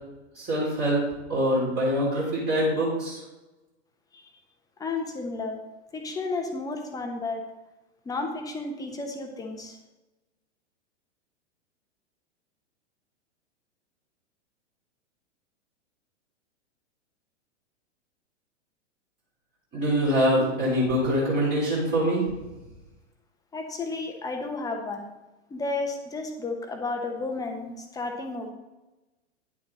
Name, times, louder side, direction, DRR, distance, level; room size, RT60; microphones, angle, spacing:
voice 1, 0.4-3.2 19.7-22.3, equal, 25° right, -6 dB, 3.6 m, -24 dB
voice 2, 4.8-5.6 5.9-7.5 8.0-9.8 23.5-25.1 25.5-28.5, left 3 dB, 10° left, 3 dB, 1.1 m, -32 dB
10.5 x 7.2 x 3.9 m, 1.1 s
figure-of-eight pair, 100°, 35 cm